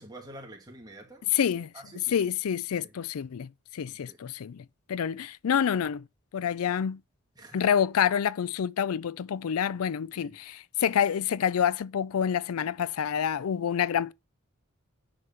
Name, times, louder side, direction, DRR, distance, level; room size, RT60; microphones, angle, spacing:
voice 1, 0.0-1.4 1.7-2.2 2.8-2.9 3.9-4.2 7.4-7.6 10.1-10.4, right 1 dB, 20° right, 2.3 m, -48 dB
voice 2, 1.3-1.7 2.1-6.0 6.3-7.0 7.5-14.1, left 8 dB, 80° left, 0.4 m, -28 dB
10.0 x 4.8 x 5.6 m
head